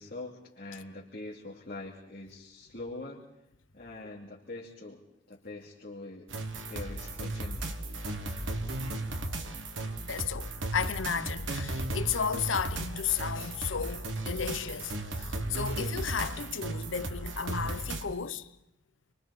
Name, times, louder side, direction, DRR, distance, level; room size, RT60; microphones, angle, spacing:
voice 1, 0.0-3.2 3.7-5.0 5.3-6.3 6.7-7.8, left 2 dB, 50° left, 2.9 m, -43 dB
sound 1, 6.3-18.0, right 2 dB, 80° right, 1.6 m, -35 dB
voice 2, 10.1-18.5, left 7 dB, 85° left, 0.9 m, -33 dB
29.0 x 24.0 x 4.2 m
head